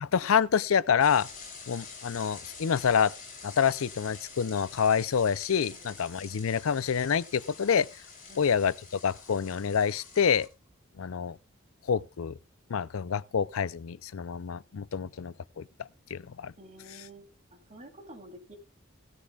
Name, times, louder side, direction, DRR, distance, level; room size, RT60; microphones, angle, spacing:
voice 1, 0.0-1.3 1.7-3.1 3.4-7.9 8.4-10.5 11.0-11.4 11.9-12.4 12.7-15.6 16.1-16.5, left 7 dB, 85° left, 0.5 m, -27 dB
sound 1, 1.0-10.5, left 5 dB, 40° left, 6.0 m, -47 dB
voice 2, 16.6-17.3 17.7-18.6, right 1 dB, 35° right, 3.2 m, -49 dB
17.5 x 13.5 x 2.4 m
head